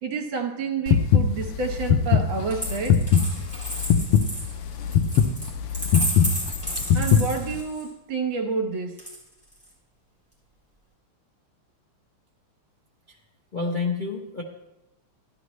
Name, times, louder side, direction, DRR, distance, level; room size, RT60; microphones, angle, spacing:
voice 1, 0.0-3.0 6.9-9.1, right 5 dB, 65° right, 4 dB, 1.8 m, -29 dB
sound 1, 0.9-7.6, left 8 dB, 90° left, 1.6 m, -20 dB
Coin (dropping), 2.5-7.9 9.0-9.7, right 1 dB, 5° left, 5.3 m, -32 dB
voice 2, 13.5-14.4, left 4 dB, 40° left, -2 dB, 0.6 m, -28 dB
13.0 x 11.5 x 3.1 m, 0.89 s
omnidirectional pair, 2.4 m